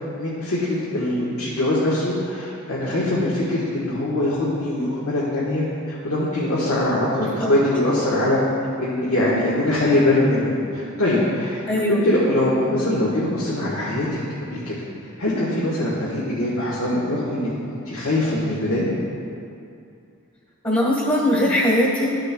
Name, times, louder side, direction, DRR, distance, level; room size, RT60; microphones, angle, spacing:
voice 1, 0.2-7.1 7.5-8.4 8.8-11.6 11.9-14.1 14.5-14.7 15.2-18.9, left 1 dB, 85° left, -8 dB, 1.4 m, -22 dB
voice 2, 7.2-7.5 11.7-12.0 20.6-22.1, left 1 dB, 25° left, -4 dB, 1.3 m, -20 dB
13.0 x 6.5 x 2.3 m, 2.5 s
head